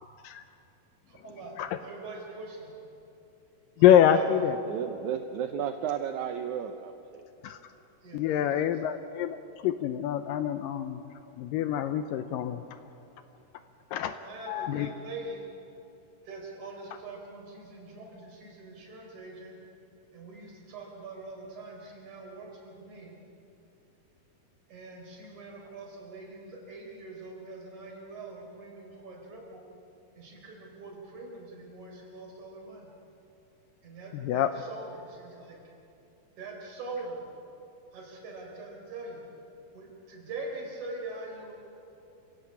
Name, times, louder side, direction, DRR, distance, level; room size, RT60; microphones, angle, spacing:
voice 1, 1.1-2.7 3.8-4.8 8.0-8.7 13.9-15.4 16.2-19.5 20.1-23.2 24.7-29.7 30.1-32.9 33.8-35.6 36.4-37.2 37.9-39.2 39.7-41.5, right 2 dB, 50° right, 0 dB, 5.3 m, -43 dB
voice 2, 3.8-4.6 7.4-7.6 8.1-9.4 9.6-11.0 11.4-12.6 13.9-14.1 14.5-14.9 34.1-34.5, left 10 dB, 80° left, 10 dB, 2.2 m, -25 dB
voice 3, 4.6-7.2, right 8 dB, 75° right, 7 dB, 1.8 m, -33 dB
27.5 x 16.5 x 8.6 m, 2.8 s
omnidirectional pair, 4.4 m